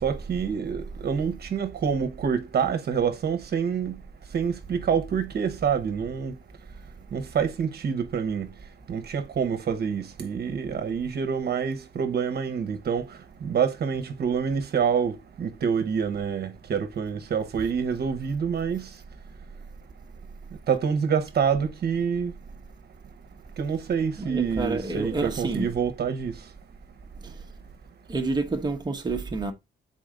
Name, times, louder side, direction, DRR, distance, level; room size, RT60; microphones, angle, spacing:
voice 1, 0.0-4.0 4.3-6.3 7.1-8.5 8.9-13.0 13.4-18.9 20.7-22.3 23.6-26.3, right 7 dB, 55° right, 1.0 m, -27 dB
voice 2, 24.2-25.7 27.2-27.4 28.1-29.5, right 3 dB, 20° right, 0.9 m, -29 dB
6.1 x 4.3 x 3.8 m
cardioid pair, 90°, 20 cm